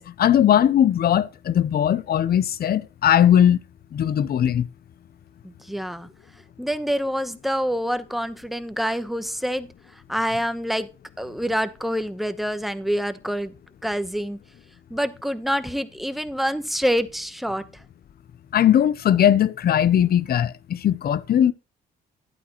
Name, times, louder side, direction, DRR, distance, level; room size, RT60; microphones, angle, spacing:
voice 1, 0.0-3.6 3.9-4.7 18.5-21.5, left 10 dB, 50° left, 0.6 m, -19 dB
voice 2, 5.4-6.1 6.6-9.7 10.1-10.9 11.2-13.5 13.8-14.4 14.9-17.6, equal, ahead, 0.9 m, -26 dB
12.0 x 8.4 x 3.0 m
cardioid pair, 90°, 20 cm